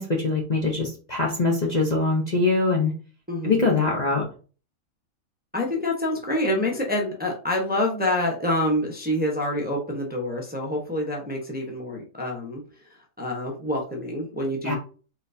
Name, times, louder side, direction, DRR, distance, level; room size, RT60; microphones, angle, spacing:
voice 1, 0.0-2.9 3.4-4.2 14.6-14.7, left 3 dB, 35° left, -2 dB, 0.8 m, -23 dB
voice 2, 3.3-3.7 5.5-12.6 13.2-14.7, left 1 dB, 10° right, 0 dB, 0.8 m, -27 dB
4.1 x 4.0 x 2.7 m, 0.37 s
omnidirectional pair, 1.5 m